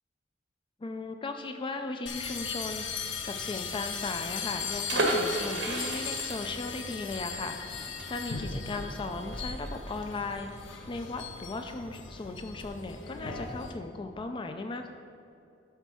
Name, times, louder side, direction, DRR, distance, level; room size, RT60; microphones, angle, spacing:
voice 1, 0.8-14.9, left 3 dB, 25° left, 6 dB, 0.4 m, -37 dB
sound 1, 2.1-13.7, left 5 dB, 80° left, 0.9 m, -38 dB
sound 2, 4.9-10.5 10.8-10.9 11.2-11.5, right 2 dB, 75° right, 1.5 m, -33 dB
11.0 x 4.5 x 6.0 m, 2.7 s
head